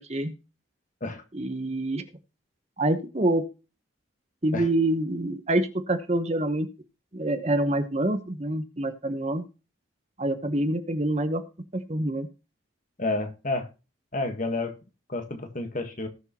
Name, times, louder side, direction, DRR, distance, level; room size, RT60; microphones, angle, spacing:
voice 1, 1.3-2.0 2.8-3.4 4.4-6.7 7.1-9.5 10.2-11.4 11.7-12.3, right 1 dB, 30° right, 8 dB, 1.1 m, -26 dB
voice 2, 13.0-13.7 14.1-14.7 15.1-16.1, left 2 dB, 40° left, 6 dB, 1.5 m, -30 dB
19.0 x 6.5 x 3.0 m, 0.31 s
head